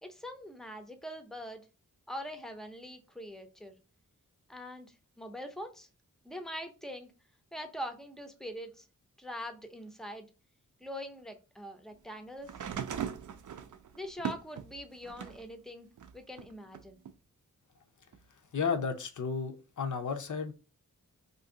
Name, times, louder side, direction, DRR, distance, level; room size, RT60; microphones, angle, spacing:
voice 1, 0.0-1.6 2.1-3.7 4.5-5.9 6.2-7.1 7.5-8.9 9.2-10.3 10.8-12.5 13.9-15.9 16.1-17.0, equal, ahead, 0.5 m, -43 dB
sound 1, 12.4-15.5 16.0-17.1 18.1-18.2, right 8 dB, 65° right, 0.4 m, -39 dB
voice 2, 18.5-20.5, left 5 dB, 65° left, 0.6 m, -33 dB
2.8 x 2.6 x 3.7 m
wide cardioid pair, 100°, 33 cm